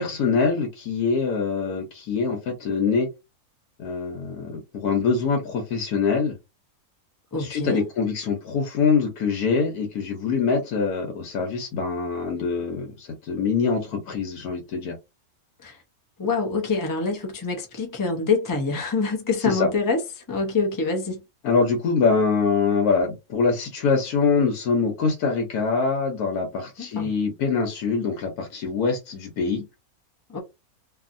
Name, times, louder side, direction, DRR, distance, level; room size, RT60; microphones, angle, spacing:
voice 1, 0.0-3.1 3.8-6.4 7.4-15.0 19.4-19.7 21.4-29.6, left 5 dB, 85° left, 1.3 m, -24 dB
voice 2, 7.3-7.8 15.6-15.8 16.2-20.0 20.3-21.2 26.8-27.1 30.3-30.4, left 4 dB, 25° left, 0.4 m, -25 dB
2.8 x 2.7 x 2.5 m
omnidirectional pair, 1.6 m